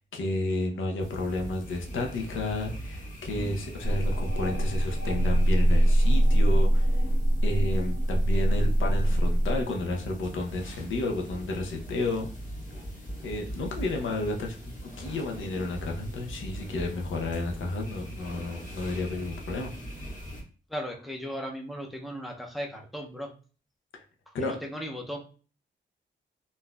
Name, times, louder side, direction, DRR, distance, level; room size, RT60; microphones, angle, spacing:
voice 1, 0.0-7.0 7.4-12.3 13.2-19.7 23.9-24.0 24.3-24.6, left 2 dB, 85° left, 2 dB, 0.7 m, -32 dB
sound 1, 1.0-20.4, right 1 dB, 40° left, 0.9 m, -41 dB
sound 2, 3.8-9.6, right 1 dB, 65° left, 1.0 m, -23 dB
Tools, 6.0-6.2 9.0-9.3 12.0-12.3 15.0-15.3, right 5 dB, 75° right, 0.6 m, -52 dB
voice 2, 20.7-23.3 24.7-25.2, equal, ahead, 1 dB, 0.4 m, -36 dB
3.8 x 2.6 x 2.2 m, 0.39 s
wide cardioid pair, 160°, 20 cm